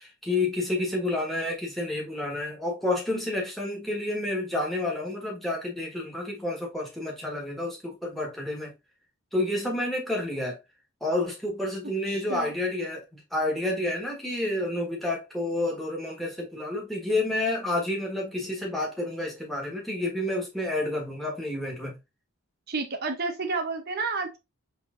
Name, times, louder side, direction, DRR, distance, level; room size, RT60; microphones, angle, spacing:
voice 1, 0.0-8.7 9.3-10.6 11.0-22.0, left 2 dB, ahead, 1.3 m, -29 dB
voice 2, 12.1-12.5 22.7-24.4, right 4 dB, 45° right, 0.8 m, -30 dB
5.5 x 3.2 x 2.5 m
head